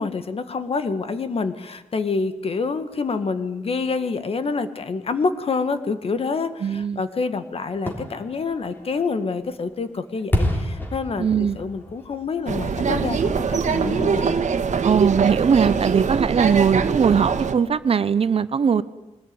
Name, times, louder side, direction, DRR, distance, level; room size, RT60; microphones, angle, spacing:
voice 1, 0.0-11.3 11.5-14.4, left 4 dB, 50° left, 11 dB, 1.7 m, -27 dB
voice 2, 6.6-7.0 11.2-11.6 14.8-18.8, right 7 dB, 50° right, 14 dB, 0.9 m, -20 dB
Fireworks, 7.7-13.5 13.9-14.0, left 1 dB, 15° left, 3.6 m, -30 dB
sound 1, 12.5-17.5, right 5 dB, 70° right, 1.8 m, -22 dB
23.5 x 19.5 x 9.6 m, 0.99 s
wide cardioid pair, 160°, 13 cm